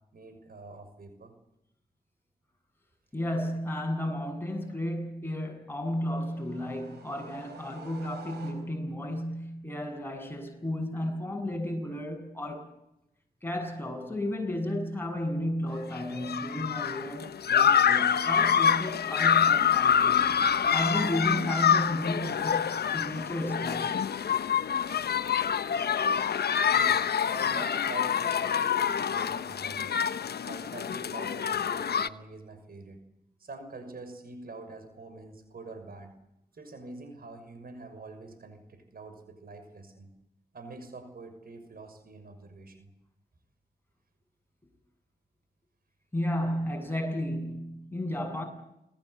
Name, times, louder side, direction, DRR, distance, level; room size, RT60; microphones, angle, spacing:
voice 1, 0.1-1.3 26.7-30.0 30.4-33.0 33.4-36.1 36.5-40.1 40.5-42.9, right 3 dB, 65° right, 6.1 m, -45 dB
voice 2, 3.1-12.7 13.4-20.4 20.7-24.1 46.1-48.4, left 1 dB, 15° left, 7.5 m, -33 dB
sound 1, 5.8-9.0, right 4 dB, 90° right, 4.8 m, -50 dB
sound 2, 16.0-32.1, left 8 dB, 75° left, 0.9 m, -26 dB
28.5 x 20.0 x 8.1 m
cardioid pair, 60°, 17 cm